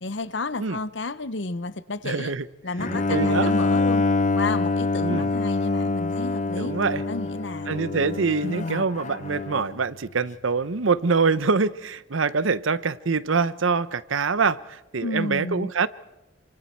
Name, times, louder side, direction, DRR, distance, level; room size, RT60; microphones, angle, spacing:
voice 1, 0.0-2.3 2.6-4.0 4.4-6.7 7.1-7.7 8.4-8.9 15.0-15.7, left 3 dB, 65° left, 0.9 m, -31 dB
voice 2, 2.0-2.5 2.8-3.5 5.0-5.3 6.6-7.0 7.7-15.9, right 4 dB, 80° right, 0.8 m, -25 dB
Bowed string instrument, 2.8-9.8, left 3 dB, 35° left, 0.7 m, -25 dB
28.0 x 26.0 x 4.6 m
head